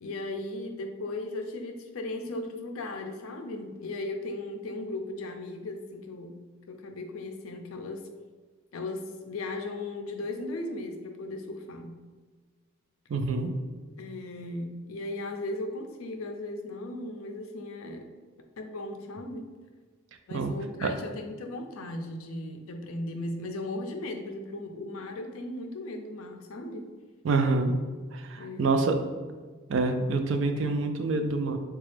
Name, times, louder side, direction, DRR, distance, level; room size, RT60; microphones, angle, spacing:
voice 1, 0.0-6.4 6.7-8.1 8.7-11.9 14.0-18.1 18.6-19.5 20.3-26.9 28.4-28.9 30.6-30.8, left 2 dB, 90° left, 5 dB, 0.4 m, -37 dB
voice 2, 13.1-13.5 20.3-20.5 20.8-20.9 27.2-27.7 28.1-29.0 29.7-31.6, right 3 dB, 65° right, 6 dB, 0.4 m, -26 dB
3.8 x 2.3 x 3.2 m, 1.4 s
head